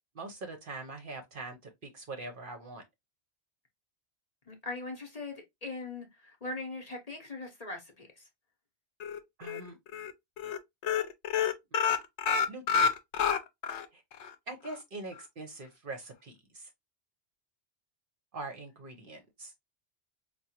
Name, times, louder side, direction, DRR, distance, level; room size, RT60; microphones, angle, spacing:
voice 1, 0.1-1.6 1.9-2.8 9.4-9.8 12.5-12.6 13.9-14.0 14.5-16.7 18.3-19.5, right 2 dB, 55° right, 0.8 m, -42 dB
voice 2, 4.5-8.2, left 3 dB, 35° left, 0.9 m, -40 dB
sound 1, 9.0-9.6 9.9-10.1 10.4-10.6 10.8-13.8 14.2-14.3 14.7-14.8, left 7 dB, 70° left, 0.8 m, -28 dB
4.7 x 2.2 x 2.8 m
omnidirectional pair, 1.2 m